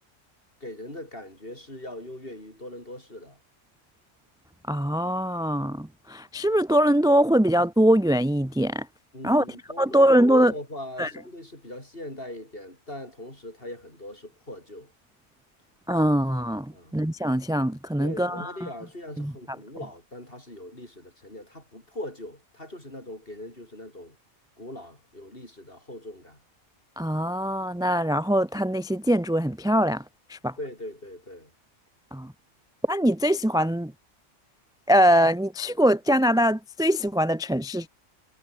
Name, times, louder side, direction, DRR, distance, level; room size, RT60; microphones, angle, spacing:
voice 1, 0.6-3.4 9.1-14.9 16.7-17.0 18.0-24.2 24.6-26.4 30.6-31.5, left 1 dB, 50° left, 8.0 m, -40 dB
voice 2, 4.7-8.9 9.2-9.4 9.8-10.5 11.0-11.1 15.9-18.7 19.2-19.3 27.0-30.0 30.3-30.5 32.1-32.3 32.9-33.9 34.9-37.9, equal, 5° right, 0.8 m, -22 dB
omnidirectional pair, 1.3 m